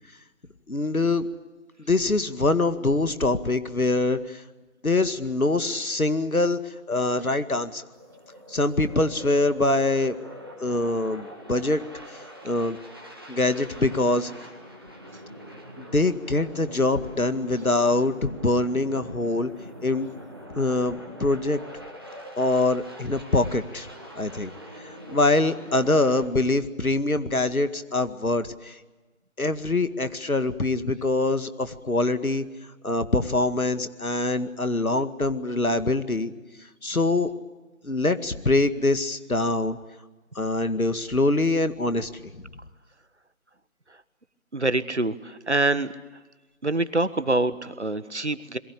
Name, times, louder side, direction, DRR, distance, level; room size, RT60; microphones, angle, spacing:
voice 1, 0.7-1.3 1.9-4.2 4.8-6.6 6.9-7.8 8.5-10.2 10.6-11.8 12.4-12.8 13.3-14.3 15.9-19.5 19.8-20.1 20.6-21.6 22.4-23.9 24.2-24.5 25.1-28.7 29.4-32.4 32.8-36.3 36.8-37.3 37.8-39.8 40.4-42.1, left 2 dB, 85° left, 10 dB, 2.2 m, -24 dB
sound 1, 7.9-26.3, equal, 15° right, 2.0 m, -43 dB
voice 2, 44.5-45.9 46.6-48.6, right 2 dB, 55° right, 14 dB, 1.5 m, -25 dB
29.0 x 22.5 x 8.5 m, 1.2 s
figure-of-eight pair, 175°, 42 cm